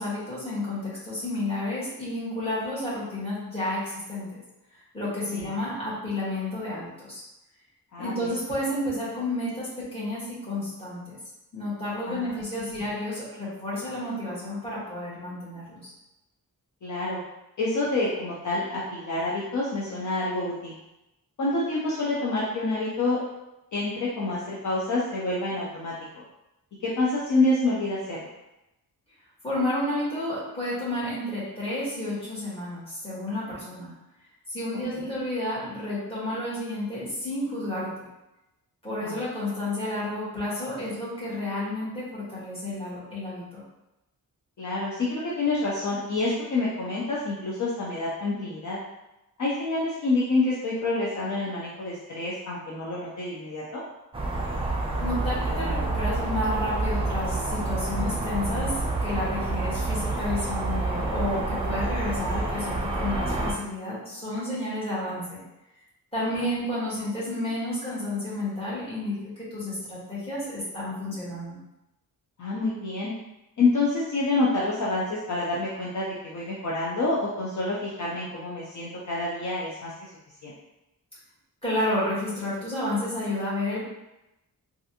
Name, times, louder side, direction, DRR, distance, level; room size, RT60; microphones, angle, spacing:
voice 1, 0.0-4.3 4.9-7.2 8.0-11.2 11.5-15.9 29.4-33.9 34.5-37.9 38.8-43.6 55.0-65.4 66.1-71.6 81.6-83.8, left 1 dB, 15° left, -10 dB, 1.3 m, -31 dB
voice 2, 7.9-8.3 12.1-12.6 16.8-17.2 17.6-20.8 21.4-23.2 23.7-25.9 26.8-28.2 35.0-35.1 39.0-39.2 44.6-48.8 49.4-53.8 72.4-73.1 73.6-79.9 80.4-80.5, left 2 dB, 50° left, -6 dB, 0.5 m, -27 dB
sound 1, 54.1-63.5, right 2 dB, 15° right, 0.4 m, -28 dB
3.2 x 2.5 x 2.8 m, 0.94 s
wide cardioid pair, 175°, 38 cm